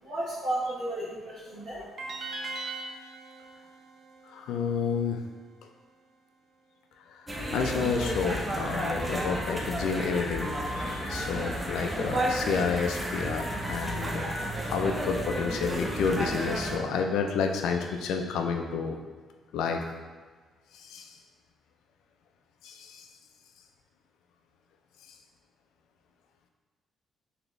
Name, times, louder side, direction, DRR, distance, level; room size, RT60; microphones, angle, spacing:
voice 1, 0.0-2.3, right 1 dB, 80° right, -9 dB, 1.0 m, -34 dB
sound 1, 2.0-5.1, right 3 dB, 55° right, 0.5 m, -40 dB
voice 2, 4.3-5.2 7.5-19.0 19.5-19.8 20.9-21.1 22.6-23.0, left 5 dB, 85° left, 4 dB, 0.4 m, -30 dB
sound 2, 7.3-16.8, right 1 dB, 20° right, 0.7 m, -32 dB
4.2 x 2.9 x 3.2 m, 1.4 s
cardioid pair, 90°, 0 cm